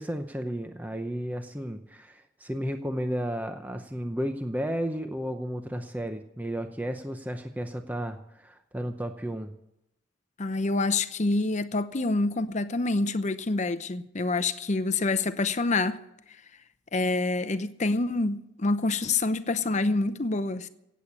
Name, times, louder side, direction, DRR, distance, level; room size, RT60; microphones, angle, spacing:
voice 1, 0.0-9.5, equal, 10° right, 0.7 m, -33 dB
voice 2, 10.4-16.0 16.9-20.7, left 3 dB, 35° left, 0.7 m, -27 dB
17.0 x 8.4 x 7.2 m
head